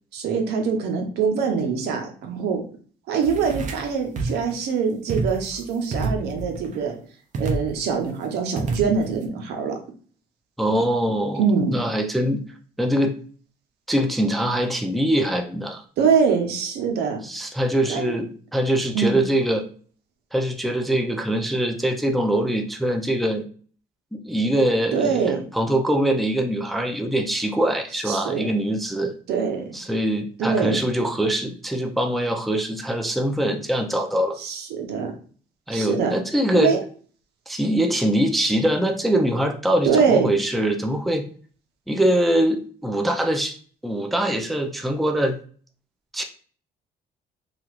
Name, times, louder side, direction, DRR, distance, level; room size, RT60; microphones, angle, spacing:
voice 1, 0.1-2.6 3.1-7.0 7.4-9.7 11.4-11.7 16.0-17.2 17.9-18.1 18.9-19.2 24.9-25.4 28.1-28.5 29.3-29.7 30.4-30.8 34.4-35.1 35.7-36.1 36.5-36.8 39.8-40.3, right 6 dB, 80° right, 4 dB, 0.7 m, -23 dB
sound 1, 3.2-3.9 4.2-4.5 5.1-5.6 5.9-6.8 7.3-8.0 8.6-9.3, right 3 dB, 45° right, 0.6 m, -28 dB
voice 2, 10.6-11.4 11.7-12.4 12.8-13.1 13.9-15.8 17.2-19.7 20.3-23.4 24.1-29.1 29.7-34.4 35.7-36.8 37.5-41.2 41.9-43.6 43.8-45.4 46.1-46.2, right 1 dB, ahead, 4 dB, 0.3 m, -23 dB
2.9 x 2.4 x 2.9 m, 0.43 s
cardioid pair, 110°, 17 cm